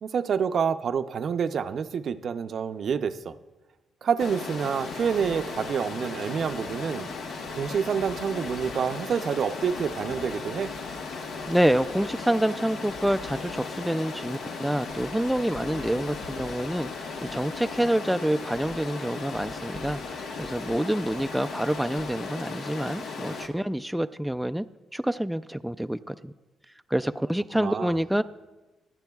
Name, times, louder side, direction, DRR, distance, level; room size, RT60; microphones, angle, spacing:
voice 1, 0.0-3.4 4.0-7.1 7.5-10.7 27.5-27.9, right 7 dB, 55° right, 10 dB, 0.5 m, -28 dB
Stream, 4.2-23.5, left 4 dB, 80° left, 1.1 m, -36 dB
voice 2, 11.5-24.6 24.9-26.3 26.9-28.2, right 1 dB, 5° right, 9 dB, 0.3 m, -27 dB
26.0 x 9.0 x 2.3 m, 1.2 s
cardioid pair, 90°, 0 cm